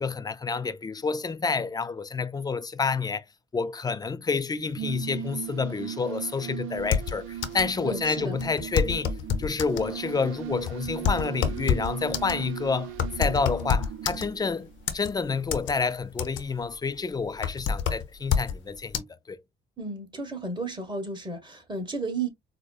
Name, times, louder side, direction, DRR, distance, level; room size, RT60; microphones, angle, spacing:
voice 1, 0.0-3.2 3.5-9.1 9.4-19.4, left 4 dB, 20° left, 0.3 m, -29 dB
sound 1, 4.6-15.0, right 11 dB, 90° right, 0.4 m, -38 dB
sound 2, 6.8-7.8 8.0-8.1 8.4-9.9 10.4-14.5 14.9-15.7 16.0-16.6 17.0-18.6 18.9-19.0, left 7 dB, 75° left, 0.7 m, -27 dB
voice 2, 7.8-8.4 19.8-22.3, right 3 dB, 20° right, 1.5 m, -33 dB
4.7 x 2.1 x 2.4 m
cardioid pair, 90°, 20 cm